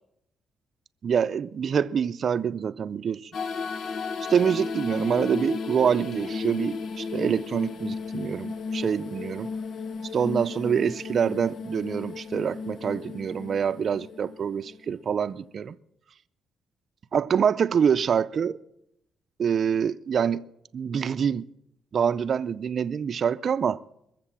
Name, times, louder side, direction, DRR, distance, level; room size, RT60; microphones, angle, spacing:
voice 1, 1.0-3.3 4.3-9.5 10.1-15.8 17.1-18.6 19.4-20.5 20.7-21.5 21.9-23.8, right 7 dB, 50° right, 0.5 m, -26 dB
sound 1, 3.3-15.1, left 5 dB, 60° left, 0.8 m, -34 dB
22.0 x 7.5 x 7.4 m
cardioid pair, 90°, 0 cm